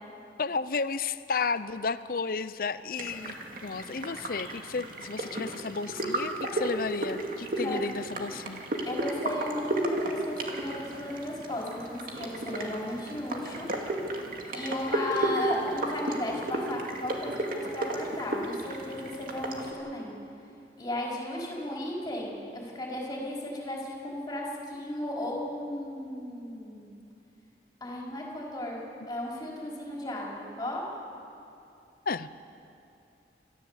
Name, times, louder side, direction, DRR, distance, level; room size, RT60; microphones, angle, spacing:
voice 1, 0.4-3.4 3.6-8.6 32.1-32.3, left 4 dB, 55° left, 14 dB, 0.6 m, -32 dB
sound 1, 3.0-19.7, right 1 dB, 50° right, 2.3 m, -34 dB
voice 2, 8.9-13.7 14.5-20.1 20.8-26.9 27.8-30.8, left 1 dB, 20° left, -3 dB, 4.6 m, -35 dB
27.0 x 14.5 x 8.2 m, 2.7 s
head